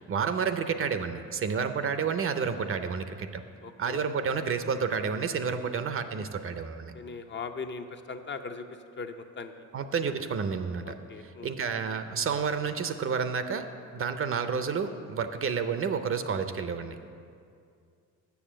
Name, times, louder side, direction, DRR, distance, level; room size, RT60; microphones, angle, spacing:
voice 1, 0.0-3.4 3.8-6.9 9.7-10.9 11.4-13.6 13.9-17.0, right 6 dB, 45° right, 9 dB, 0.6 m, -30 dB
voice 2, 2.5-2.8 3.6-4.1 6.9-8.7 9.0-9.7 10.8-11.6, left 4 dB, 35° left, 6 dB, 0.6 m, -40 dB
7.1 x 6.7 x 7.5 m, 2.3 s
cardioid pair, 95°, 31 cm